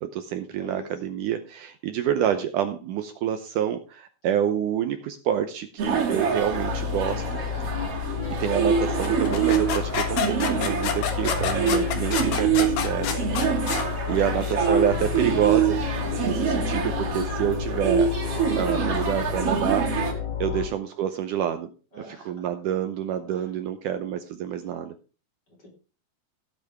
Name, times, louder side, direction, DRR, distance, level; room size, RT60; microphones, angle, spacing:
voice 1, 0.0-7.4 8.4-13.1 13.4-15.8 16.2-18.1 18.6-21.7 22.0-25.0, right 10 dB, 75° right, 8 dB, 2.1 m, -28 dB
voice 2, 0.6-0.9 7.6-7.9 21.9-22.5 23.3-23.4 25.6-25.7, left 1 dB, 30° left, 0 dB, 3.3 m, -45 dB
huinan busy restaurant, 5.8-20.1, right 7 dB, 45° right, 3.1 m, -26 dB
sound 1, 6.5-20.7, left 8 dB, 60° left, 1.2 m, -31 dB
sound 2, 9.0-13.9, left 7 dB, 90° left, 3.6 m, -28 dB
16.5 x 8.2 x 3.5 m, 0.35 s
omnidirectional pair, 4.2 m